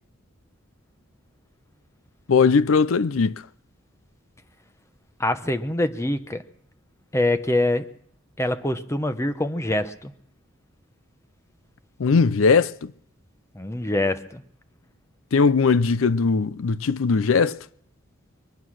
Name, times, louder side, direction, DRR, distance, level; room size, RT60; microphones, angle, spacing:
voice 1, 2.3-3.4 12.0-12.9 15.3-17.6, left 5 dB, 70° left, 0.5 m, -19 dB
voice 2, 5.2-6.4 7.1-7.8 8.4-10.1 13.5-14.4, left 1 dB, 15° left, 0.9 m, -24 dB
23.0 x 9.4 x 6.2 m
head